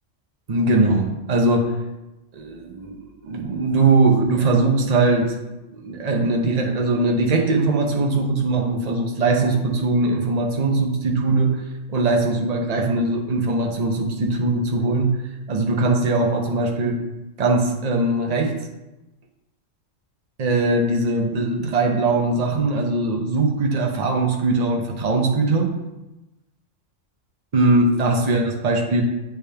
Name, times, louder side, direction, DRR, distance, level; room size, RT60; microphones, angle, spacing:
voice 1, 0.5-1.7 2.3-5.3 5.7-11.6 11.9-15.2 15.5-17.0 17.4-18.5 20.4-25.7 27.5-29.0, right 2 dB, 40° right, 2 dB, 0.7 m, -20 dB
8.4 x 3.5 x 3.4 m, 1.0 s
omnidirectional pair, 1.3 m